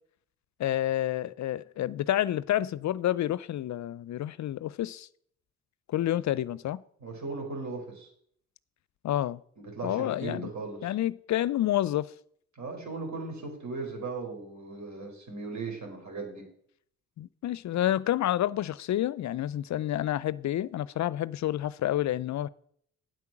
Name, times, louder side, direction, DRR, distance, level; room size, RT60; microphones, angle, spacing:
voice 1, 0.6-5.1 5.9-6.8 9.0-9.4 9.8-10.5 10.8-12.1 17.2-22.5, left 13 dB, 55° left, 0.5 m, -29 dB
voice 2, 7.0-8.1 9.6-10.9 12.5-16.4, right 3 dB, 55° right, 4.6 m, -37 dB
9.3 x 8.3 x 5.9 m
supercardioid pair, 50°, 34 cm